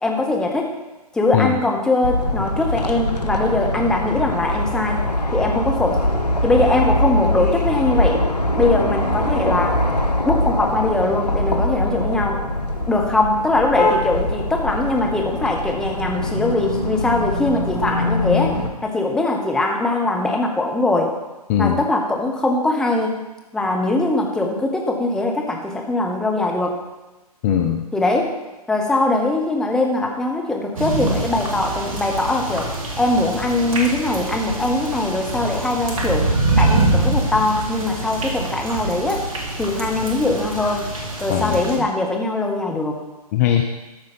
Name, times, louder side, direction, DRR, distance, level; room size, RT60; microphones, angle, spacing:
voice 1, 0.0-0.8 1.1-6.0 6.4-8.2 8.6-9.8 10.2-12.5 12.9-21.1 21.6-23.2 23.5-26.8 27.9-28.3 28.7-32.7 33.0-36.3 36.6-39.3 39.5-40.9 41.2-43.0, left 2 dB, 5° left, 1 dB, 1.0 m, -21 dB
sound 1, 2.0-18.7, left 1 dB, 85° left, 1.3 m, -22 dB
voice 2, 21.5-21.8 27.4-27.8 41.3-41.9 43.3-43.6, left 9 dB, 25° left, 4 dB, 0.6 m, -20 dB
sound 2, 30.8-41.8, right 2 dB, 55° right, 2.2 m, -24 dB
13.0 x 5.4 x 5.3 m, 1.1 s
figure-of-eight pair, 135°, 20 cm